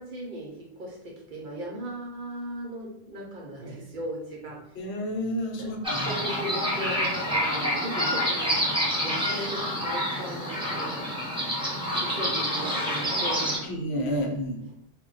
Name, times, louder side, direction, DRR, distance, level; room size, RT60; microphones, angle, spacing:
voice 1, 0.0-5.0 5.6-11.4 12.0-13.7, right 1 dB, 55° right, -2 dB, 0.7 m, -37 dB
voice 2, 4.8-6.1 13.6-14.6, equal, 75° left, 1 dB, 0.8 m, -30 dB
sound 1, 5.8-13.6, equal, 5° right, 0.6 m, -28 dB
2.1 x 2.1 x 3.8 m, 0.74 s
omnidirectional pair, 1.1 m